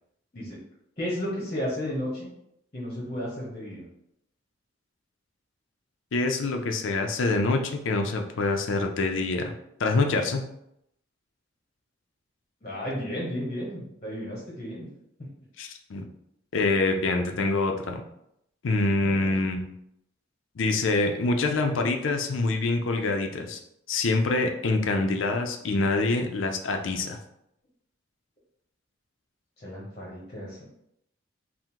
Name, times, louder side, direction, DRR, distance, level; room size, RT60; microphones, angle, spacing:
voice 1, 1.0-2.3 2.7-3.9 12.6-14.9 15.2-15.3 19.0-19.3 29.6-30.7, equal, 35° left, -4 dB, 0.9 m, -33 dB
voice 2, 6.1-7.6 7.8-9.5 9.8-10.4 15.6-16.1 16.5-18.0 18.6-19.7 20.6-23.6 23.9-27.2, left 3 dB, 80° left, 4 dB, 0.5 m, -25 dB
3.6 x 2.1 x 4.4 m, 0.77 s
head